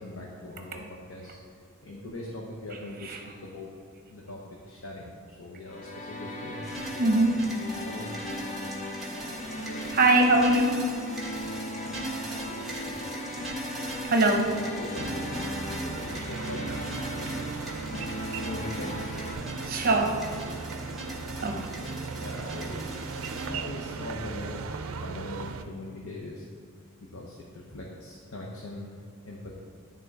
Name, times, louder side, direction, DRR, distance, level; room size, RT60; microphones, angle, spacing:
voice 1, 0.0-1.4 1.8-3.7 4.1-7.2 7.8-8.1 14.8-15.4 15.8-16.7 17.9-19.2 22.1-22.8 23.2-24.7 24.9-26.5 27.0-28.9 29.2-29.6, left 1 dB, 85° left, -2 dB, 0.8 m, -41 dB
sound 1, 5.7-19.3, left 1 dB, 35° left, 0.7 m, -38 dB
sound 2, 6.6-23.5, right 1 dB, ahead, 1.2 m, -39 dB
voice 2, 7.0-7.4 9.1-10.9 11.4-11.7 12.5-12.7 13.5-13.6 14.0-14.6 19.7-20.1 21.4-21.7, right 2 dB, 45° right, 3 dB, 0.8 m, -24 dB
sound 3, 15.0-25.6, right 4 dB, 80° right, 0.4 m, -37 dB
10.5 x 3.6 x 4.0 m, 2.3 s
head